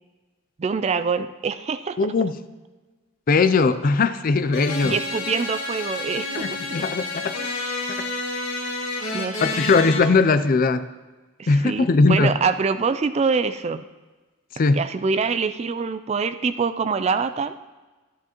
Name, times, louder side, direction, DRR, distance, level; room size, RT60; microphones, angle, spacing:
voice 1, 0.6-2.1 4.8-6.5 9.1-9.4 11.4-13.9 14.7-17.6, right 5 dB, 30° right, 11 dB, 0.3 m, -25 dB
voice 2, 2.0-2.3 3.3-5.0 6.3-7.4 9.4-10.9 11.5-12.3 14.6-14.8, left 4 dB, 40° left, 13 dB, 0.4 m, -19 dB
sound 1, 4.5-10.0, left 2 dB, 75° left, 2.0 m, -29 dB
12.0 x 10.5 x 3.0 m, 1.3 s
head